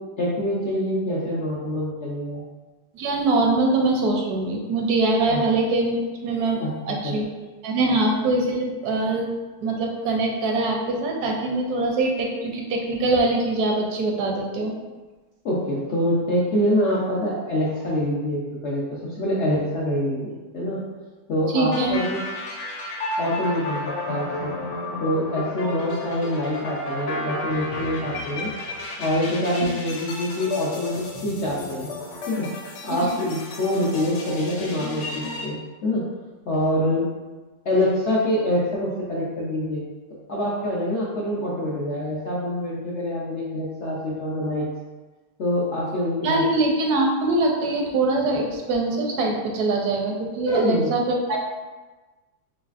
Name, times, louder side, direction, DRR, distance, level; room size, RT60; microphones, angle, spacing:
voice 1, 0.2-2.4 5.3-5.4 6.6-7.1 7.8-7.9 15.4-20.8 21.3-22.2 23.2-24.5 25.0-28.5 29.0-31.9 32.3-32.5 32.8-36.1 36.5-37.1 37.6-39.8 40.3-44.7 45.4-46.4 50.5-50.9, left 1 dB, 65° left, -6 dB, 0.7 m, -25 dB
voice 2, 2.9-7.3 7.6-9.3 9.6-14.7 21.5-22.0 29.6-29.7 46.2-51.4, right 2 dB, 75° right, 0 dB, 1.1 m, -23 dB
sound 1, 21.7-35.5, left 2 dB, 80° left, 1.2 m, -32 dB
4.0 x 3.0 x 2.4 m, 1.2 s
omnidirectional pair, 1.8 m